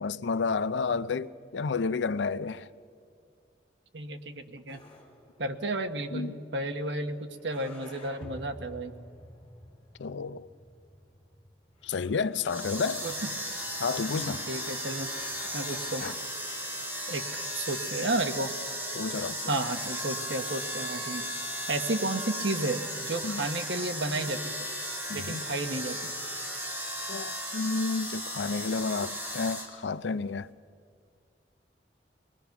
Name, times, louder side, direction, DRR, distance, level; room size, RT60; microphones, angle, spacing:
voice 1, 0.0-2.7 6.1-6.4 10.0-10.5 11.8-13.0 13.8-14.4 16.0-16.1 18.9-19.6 23.2-23.5 25.1-25.4 27.1-30.5, left 4 dB, 85° left, 0.5 m, -31 dB
voice 2, 3.9-4.8 5.4-8.9 13.0-13.1 14.1-15.1 15.5-16.0 17.1-17.2 17.5-18.5 19.5-21.3 21.7-24.5 25.1-26.1, right 2 dB, 80° right, 1.3 m, -32 dB
sound 1, 4.7-16.1, left 1 dB, 30° left, 4.1 m, -51 dB
sound 2, 12.4-29.7, equal, 10° right, 3.2 m, -36 dB
24.5 x 20.0 x 5.9 m
head